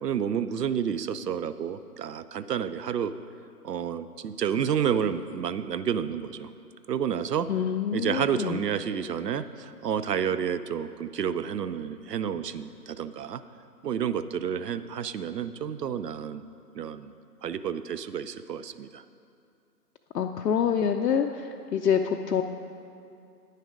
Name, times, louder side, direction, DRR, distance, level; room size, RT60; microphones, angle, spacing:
voice 1, 0.0-3.1 3.6-6.5 6.9-7.5 7.9-13.4 13.8-16.4 16.7-17.1 17.4-19.0, right 8 dB, 75° right, 13 dB, 0.6 m, -30 dB
voice 2, 7.5-8.6 20.1-22.4, left 7 dB, 80° left, 3 dB, 0.6 m, -26 dB
9.4 x 6.5 x 5.1 m, 2.5 s
figure-of-eight pair, 155°, 48 cm